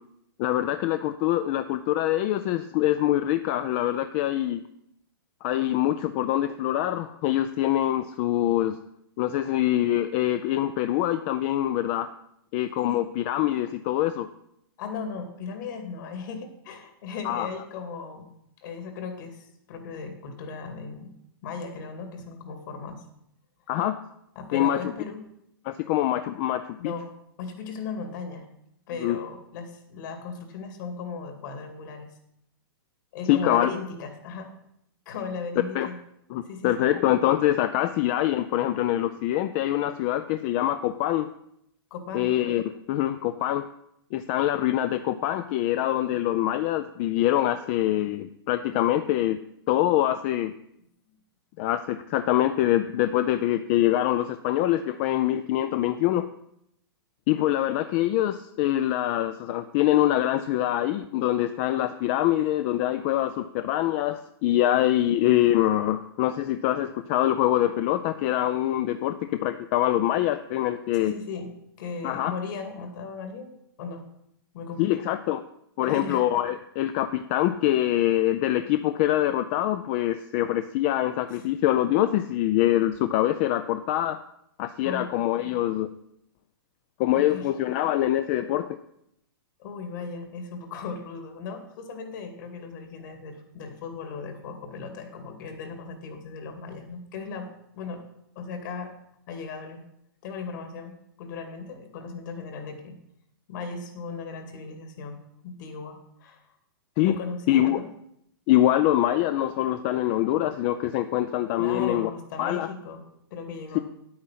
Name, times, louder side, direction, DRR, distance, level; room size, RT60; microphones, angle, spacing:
voice 1, 0.4-4.6 5.4-8.8 9.2-12.1 12.5-14.3 17.2-17.5 23.7-24.0 24.5-24.8 25.7-26.9 29.0-29.2 33.3-33.7 35.7-35.9 36.3-41.3 42.1-43.7 44.1-49.4 49.7-50.5 51.6-56.3 57.3-71.1 72.0-72.3 74.8-75.4 75.8-84.2 84.6-85.9 87.0-88.8 107.0-107.2 107.5-107.8 108.5-112.1 112.4-112.7 113.7-113.8, left 13 dB, 30° left, 11 dB, 0.4 m, -24 dB
voice 2, 12.8-13.2 14.8-21.1 21.4-23.0 24.4-25.2 26.8-27.1 27.4-28.5 28.9-32.1 33.1-34.5 35.1-36.0 36.4-36.9 41.9-42.3 51.1-51.2 70.9-71.5 71.8-73.5 73.8-74.1 74.5-75.0 75.8-76.2 81.3-81.4 84.8-85.1 87.1-87.5 89.6-98.0 98.4-98.9 99.3-99.8 100.2-103.0 103.5-105.2 105.4-106.5 107.0-107.9 111.6-113.0 113.3-113.8, left 5 dB, 50° left, 5 dB, 2.4 m, -37 dB
9.7 x 8.6 x 5.7 m, 0.77 s
hypercardioid pair, 155°, 13 cm